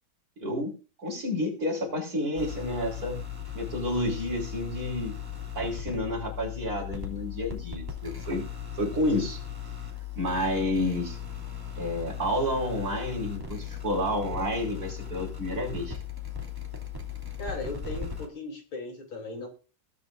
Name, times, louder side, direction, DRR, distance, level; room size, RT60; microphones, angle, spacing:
voice 1, 0.4-3.2 3.5-5.2 5.6-8.4 8.8-9.4 10.2-11.2 11.8-16.0, left 1 dB, 45° right, -1 dB, 5.3 m, -30 dB
sound 1, 2.4-18.3, left 8 dB, 10° right, 2.6 m, -38 dB
voice 2, 17.4-19.5, left 2 dB, 80° left, 3 dB, 4.2 m, -37 dB
20.5 x 8.6 x 2.6 m, 0.35 s
omnidirectional pair, 2.2 m